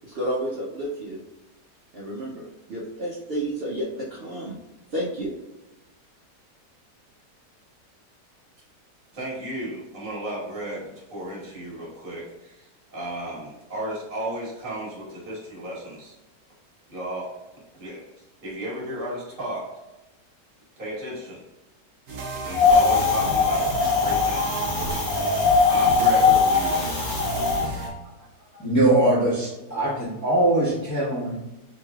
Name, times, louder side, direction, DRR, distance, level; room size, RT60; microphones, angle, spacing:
voice 1, 0.0-1.2 1.9-4.6 4.9-5.4, right 1 dB, 90° right, -6 dB, 0.5 m, -31 dB
voice 2, 9.1-16.2 16.9-17.3 17.7-18.0 18.4-19.6 20.8-21.4 22.4-25.4 25.7-26.9, right 1 dB, 35° right, -7 dB, 1.4 m, -34 dB
sound 1, 22.1-27.9, right 1 dB, 65° right, 1.1 m, -33 dB
Wind, 22.5-27.6, left 4 dB, 60° left, 0.7 m, -20 dB
voice 3, 28.5-31.3, right 1 dB, 10° left, -9 dB, 0.9 m, -22 dB
3.8 x 3.0 x 2.3 m, 1.0 s
omnidirectional pair, 1.9 m